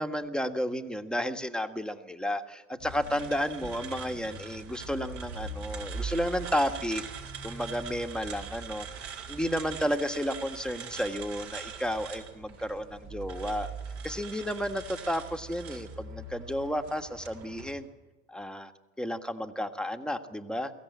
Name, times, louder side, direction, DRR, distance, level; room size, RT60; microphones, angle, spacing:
voice 1, 0.0-7.0 7.4-13.7 14.0-17.9 18.3-18.7 19.0-20.7, equal, ahead, 6 dB, 1.6 m, -32 dB
sound 1, 2.8-17.7, right 5 dB, 55° right, 4.6 m, -41 dB
23.5 x 15.5 x 9.6 m, 1.2 s
hypercardioid pair, 85°, 33 cm